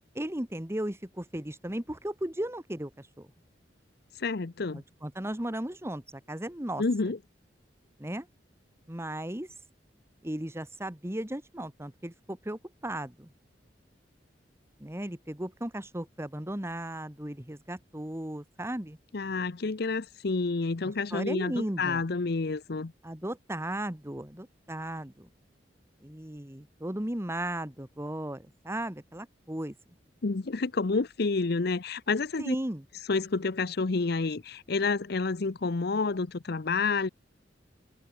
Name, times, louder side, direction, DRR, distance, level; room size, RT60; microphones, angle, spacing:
voice 1, 0.1-3.3 4.7-6.8 8.0-8.3 8.9-9.5 10.2-13.3 14.8-19.0 20.8-22.0 23.0-25.3 26.0-29.7 32.4-32.8, right 1 dB, 15° right, 1.6 m, -36 dB
voice 2, 4.2-4.8 6.8-7.2 19.1-22.9 30.2-32.6 33.1-37.1, left 4 dB, 60° left, 0.7 m, -29 dB
open air
head